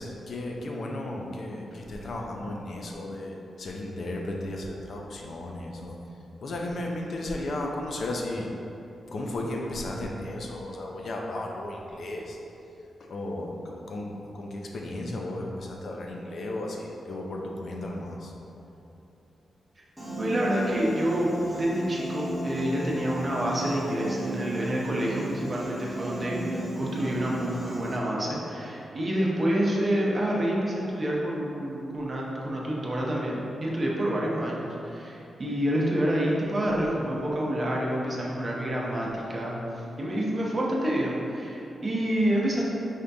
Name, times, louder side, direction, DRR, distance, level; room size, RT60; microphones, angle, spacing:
voice 1, 0.0-8.5 9.1-12.4 13.0-18.3, left 1 dB, 55° left, 0 dB, 0.5 m, -34 dB
Piano, 20.0-28.0, right 1 dB, ahead, 0.9 m, -35 dB
voice 2, 20.2-42.7, right 1 dB, 30° right, -4 dB, 0.7 m, -28 dB
5.0 x 2.7 x 3.4 m, 2.9 s
wide cardioid pair, 145°, 0 cm